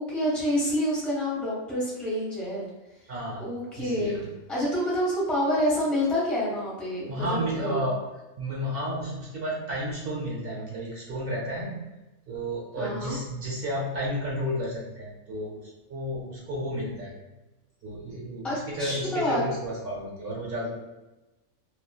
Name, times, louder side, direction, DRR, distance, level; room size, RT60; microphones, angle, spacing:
voice 1, 0.0-2.7 3.4-4.2 4.5-7.8 12.8-13.2 18.4-19.4, left 1 dB, ahead, -6 dB, 0.6 m, -28 dB
voice 2, 3.1-3.4 3.8-4.2 7.1-8.0 8.4-11.9 12.3-15.5 15.9-17.1 17.8-20.7, equal, 45° right, -4 dB, 0.9 m, -32 dB
2.5 x 2.5 x 2.3 m, 1.0 s
omnidirectional pair, 1.5 m